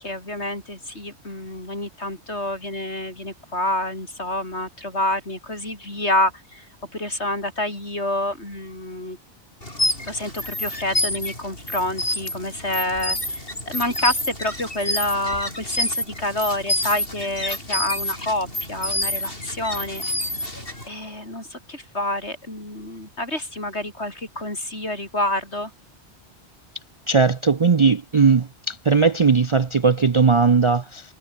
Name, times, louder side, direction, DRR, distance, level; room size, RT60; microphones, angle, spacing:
voice 1, 0.0-6.7 6.9-9.2 10.0-20.0 20.9-25.7, left 1 dB, 70° left, 8.0 m, -28 dB
sound 1, 9.6-20.9, left 1 dB, 50° left, 8.0 m, -28 dB
voice 2, 27.1-31.0, right 5 dB, 35° right, 0.5 m, -18 dB
omnidirectional pair, 1.2 m